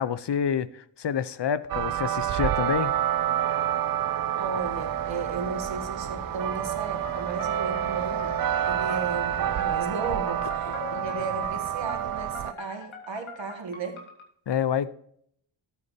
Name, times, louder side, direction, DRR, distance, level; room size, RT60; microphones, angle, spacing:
voice 1, 0.0-2.9 14.5-14.9, left 8 dB, 60° left, 0.7 m, -27 dB
sound 1, 1.7-12.5, right 11 dB, 50° right, 0.4 m, -28 dB
voice 2, 4.4-8.4 8.6-14.0, right 4 dB, 70° right, 2.0 m, -35 dB
sound 2, 4.6-9.7, left 1 dB, 15° left, 2.8 m, -45 dB
sound 3, 7.0-14.3, left 3 dB, 85° left, 2.4 m, -41 dB
13.5 x 8.5 x 2.8 m
wide cardioid pair, 80°, 47 cm